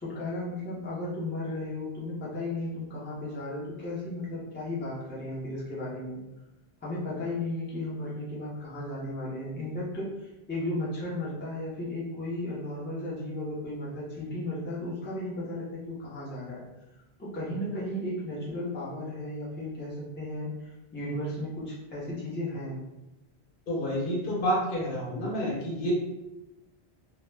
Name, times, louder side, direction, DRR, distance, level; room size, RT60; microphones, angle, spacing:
voice 1, 0.0-6.2 6.8-16.6 17.2-22.8, left 1 dB, 15° left, -6 dB, 0.5 m, -35 dB
voice 2, 23.7-25.9, equal, 60° left, -3 dB, 0.8 m, -29 dB
2.1 x 2.1 x 3.2 m, 0.96 s
omnidirectional pair, 1.1 m